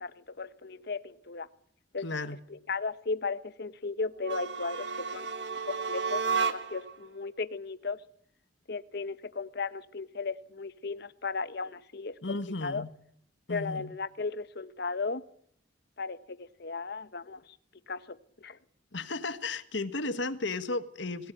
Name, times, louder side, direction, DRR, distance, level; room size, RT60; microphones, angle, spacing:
voice 1, 0.0-1.5 1.9-2.1 2.7-6.2 6.5-8.0 8.7-12.4 12.6-12.9 13.5-15.2 16.0-17.4 17.9-18.6, left 4 dB, 60° left, 1.0 m, -36 dB
voice 2, 2.0-2.4 12.2-12.9 13.5-13.9 18.9-21.3, left 3 dB, 75° left, 1.5 m, -34 dB
sound 1, 4.2-6.9, right 5 dB, 70° right, 1.5 m, -32 dB
18.0 x 17.5 x 9.3 m
head